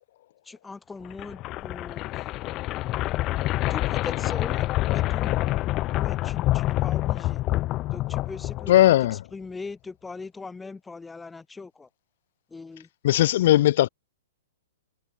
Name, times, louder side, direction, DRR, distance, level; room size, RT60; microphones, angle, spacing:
voice 1, 0.4-2.2 3.7-5.4 5.9-7.4 7.9-11.9 12.5-12.9, left 4 dB, 10° left, 7.3 m, -40 dB
sound 1, 1.1-9.1, left 17 dB, 30° left, 4.0 m, -27 dB
voice 2, 8.7-9.2 13.0-13.9, left 14 dB, 55° left, 1.1 m, -18 dB
hypercardioid pair, 135°, 0 cm